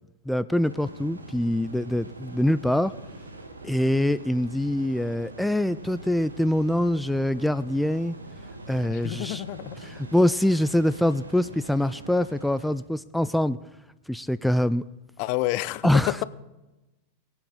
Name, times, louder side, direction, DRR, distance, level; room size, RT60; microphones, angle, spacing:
voice 1, 0.3-2.9 3.6-8.2 8.7-9.4 10.1-13.6 14.1-14.8 15.8-16.1, left 1 dB, ahead, 13 dB, 0.3 m, -24 dB
sound 1, 0.6-12.8, right 2 dB, 75° right, 1.3 m, -43 dB
voice 2, 8.9-9.8 15.2-16.2, left 17 dB, 45° left, 17 dB, 0.6 m, -29 dB
22.0 x 8.2 x 3.8 m, 1.0 s
figure-of-eight pair, 90°, 0 cm